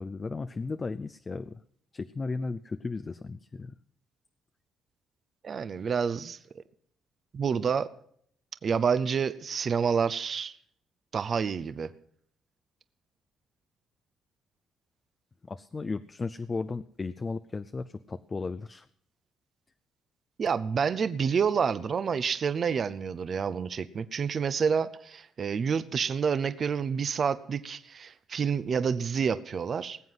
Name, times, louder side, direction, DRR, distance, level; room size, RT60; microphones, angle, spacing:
voice 1, 0.0-1.6 1.9-3.8 15.4-18.9, left 3 dB, 30° left, 0.5 m, -35 dB
voice 2, 5.4-6.4 7.3-7.9 8.6-10.6 11.1-11.9 20.4-30.0, right 6 dB, 50° right, 0.7 m, -28 dB
19.0 x 7.8 x 5.7 m
cardioid pair, 90°, 0 cm